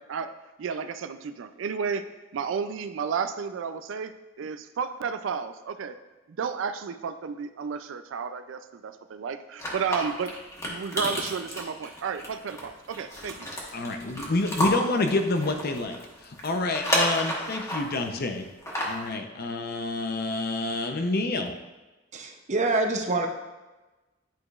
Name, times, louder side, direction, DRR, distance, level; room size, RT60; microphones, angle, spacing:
voice 1, 0.0-4.1 4.4-6.0 6.3-10.3 10.7-13.5, right 6 dB, 75° right, 10 dB, 0.4 m, -32 dB
sound 1, 9.6-18.0 18.5-19.1, equal, 15° left, 1.2 m, -31 dB
voice 2, 13.7-16.0 16.2-18.5 18.8-21.5, left 2 dB, 55° left, 5 dB, 0.7 m, -28 dB
voice 3, 22.1-23.3, right 2 dB, 40° right, 4 dB, 0.7 m, -26 dB
10.5 x 4.9 x 2.4 m, 1.1 s
head